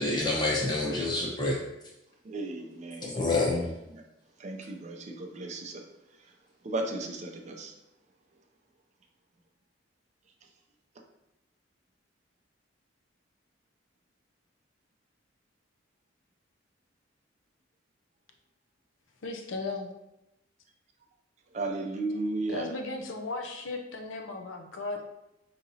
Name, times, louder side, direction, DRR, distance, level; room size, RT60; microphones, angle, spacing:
voice 1, 0.0-1.6 3.1-3.7, left 2 dB, 20° left, 0.8 m, -27 dB
voice 2, 2.2-3.3 3.6-4.0 4.4-5.8 6.1-6.3 6.6-7.8 21.5-22.7, right 2 dB, 35° right, 0.4 m, -35 dB
voice 3, 19.2-19.9 22.5-25.0, left 3 dB, 85° left, 0.6 m, -36 dB
5.1 x 2.8 x 2.7 m
head